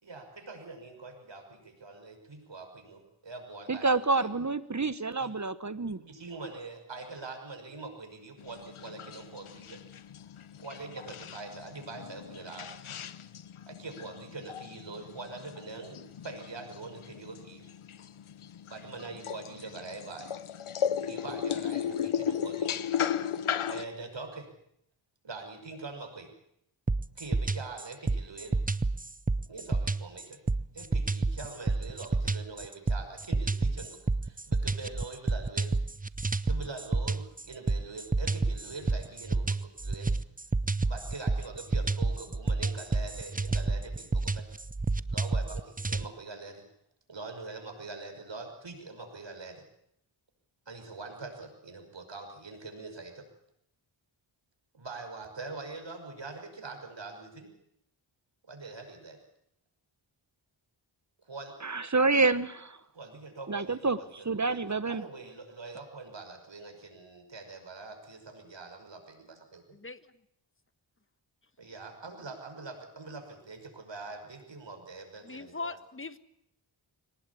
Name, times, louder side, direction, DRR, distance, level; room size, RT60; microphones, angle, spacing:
voice 1, 0.0-4.3 5.2-5.3 6.0-9.8 10.6-12.7 13.7-17.7 18.7-20.3 21.0-22.8 23.7-24.5 25.2-26.3 27.1-28.6 29.5-30.4 30.7-35.7 36.4-40.1 40.8-44.5 45.1-46.6 47.1-49.6 50.7-53.3 54.7-57.5 58.4-59.2 61.2-61.6 62.9-69.6 71.6-75.7, right 3 dB, 65° right, 5 dB, 6.0 m, -44 dB
voice 2, 3.7-6.0 61.6-62.8 63.5-64.0 64.2-65.0, right 3 dB, 35° right, 14 dB, 1.3 m, -28 dB
sound 1, 8.4-23.8, left 8 dB, 90° left, 1.0 m, -36 dB
sound 2, 26.9-46.1, right 3 dB, 15° right, 0.8 m, -30 dB
voice 3, 75.0-76.2, left 3 dB, 25° left, 13 dB, 1.5 m, -40 dB
23.0 x 19.0 x 8.5 m, 0.76 s
cardioid pair, 55°, 48 cm